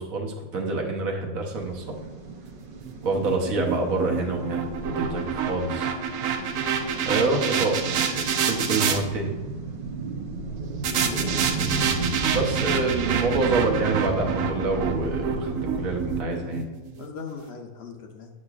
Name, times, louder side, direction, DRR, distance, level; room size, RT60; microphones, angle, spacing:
voice 1, 0.0-2.0 3.0-5.9 7.0-9.4 12.3-16.7, right 3 dB, 70° right, 2 dB, 1.3 m, -27 dB
sound 1, 1.5-16.2, right 3 dB, 55° right, 0.6 m, -33 dB
sound 2, 2.8-9.0 10.8-17.1, right 7 dB, 90° right, 1.1 m, -28 dB
voice 2, 7.2-7.6 10.9-11.2 17.0-18.3, left 5 dB, 55° left, 3 dB, 0.8 m, -38 dB
7.5 x 6.4 x 2.4 m, 1.3 s
omnidirectional pair, 1.5 m